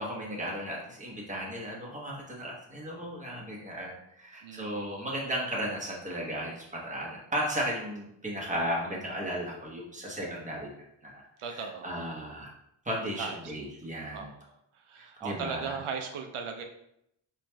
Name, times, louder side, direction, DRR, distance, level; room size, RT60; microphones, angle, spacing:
voice 1, 0.0-10.7 11.0-12.5 12.8-14.3 15.0-15.7, equal, 15° right, -4 dB, 1.0 m, -35 dB
voice 2, 4.4-4.9 11.4-11.9 13.2-13.4 14.1-14.3 14.8-16.6, right 6 dB, 85° right, 4 dB, 0.6 m, -37 dB
4.6 x 3.1 x 2.2 m, 0.78 s
wide cardioid pair, 110°, 49 cm